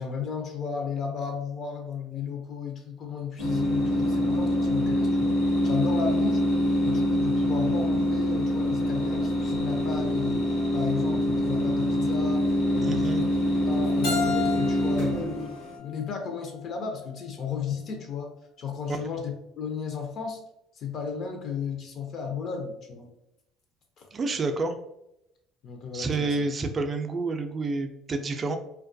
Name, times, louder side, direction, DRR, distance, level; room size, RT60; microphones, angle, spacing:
voice 1, 0.0-6.4 6.8-10.4 10.7-12.5 12.7-13.3 13.7-15.3 15.8-18.3 18.6-20.4 20.7-23.1 24.0-24.1 25.6-26.5, left 6 dB, 55° left, 3 dB, 0.5 m, -34 dB
sound 1, 3.4-15.7, left 1 dB, 70° left, 1.2 m, -25 dB
voice 2, 12.8-13.2 24.1-24.7 25.9-28.6, right 3 dB, 35° right, 6 dB, 0.3 m, -29 dB
Keyboard (musical), 14.0-16.9, left 6 dB, 90° left, 0.8 m, -34 dB
2.2 x 2.1 x 2.5 m, 0.82 s
supercardioid pair, 90°, 0 cm